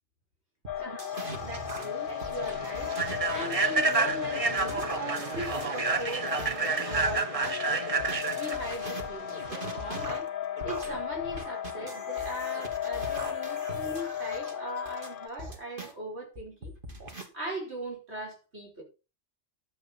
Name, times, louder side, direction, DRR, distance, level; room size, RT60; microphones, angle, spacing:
sound 1, 0.6-7.5 8.0-15.9 16.4-17.3, right 2 dB, 50° right, 2.6 m, -42 dB
sound 2, 0.7-15.3, left 10 dB, 55° left, 0.8 m, -35 dB
Human voice / Train, 1.2-10.1, right 4 dB, 35° right, 1.0 m, -30 dB
voice 1, 1.4-7.9 8.4-10.3 10.6-16.7 17.3-18.8, right 1 dB, 65° right, 5.2 m, -40 dB
12.5 x 8.3 x 4.4 m
omnidirectional pair, 1.2 m